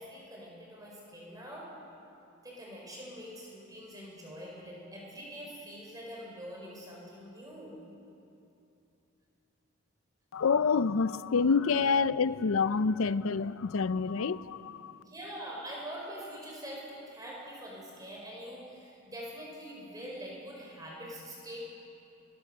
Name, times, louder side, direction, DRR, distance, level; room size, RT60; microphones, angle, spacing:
voice 1, 0.0-1.7 2.4-7.8 15.0-21.6, equal, 15° right, 4.9 m, -44 dB
voice 2, 10.3-15.0, left 5 dB, 75° left, 0.5 m, -27 dB
21.0 x 19.5 x 6.7 m
head